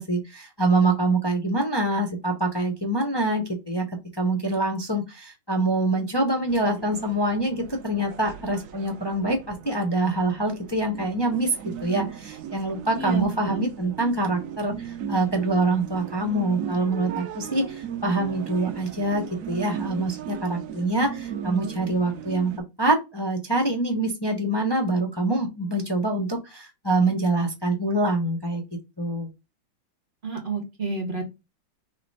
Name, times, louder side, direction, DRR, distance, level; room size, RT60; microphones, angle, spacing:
voice 1, 0.0-3.9 4.2-22.5 22.8-28.6 29.0-29.3, right 2 dB, 35° left, 0 dB, 0.4 m, -25 dB
sound 1, 6.5-22.6, right 9 dB, 75° right, 0.7 m, -37 dB
voice 2, 12.9-13.2 30.2-31.2, right 4 dB, 35° right, 2 dB, 1.6 m, -29 dB
4.2 x 3.2 x 4.0 m, 0.25 s
omnidirectional pair, 2.1 m